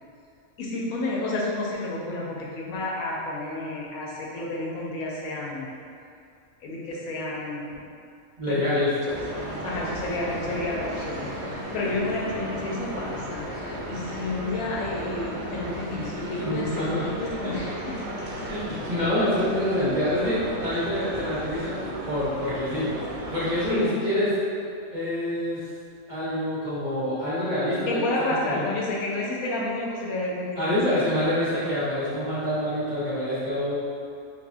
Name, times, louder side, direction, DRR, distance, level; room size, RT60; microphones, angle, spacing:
voice 1, 0.6-5.7 6.6-7.8 8.5-8.8 9.6-17.9 23.7-23.9 27.9-30.9, left 2 dB, 80° left, -4 dB, 1.0 m, -30 dB
voice 2, 8.4-8.9 16.4-17.1 17.4-17.5 18.5-22.9 23.3-24.3 24.9-25.6 26.1-28.0 28.4-28.6 30.6-33.7, left 1 dB, 35° right, -11 dB, 0.9 m, -26 dB
sound 1, 9.1-23.9, equal, 60° right, 0.9 m, -34 dB
3.4 x 3.1 x 2.5 m, 2.4 s
omnidirectional pair, 1.5 m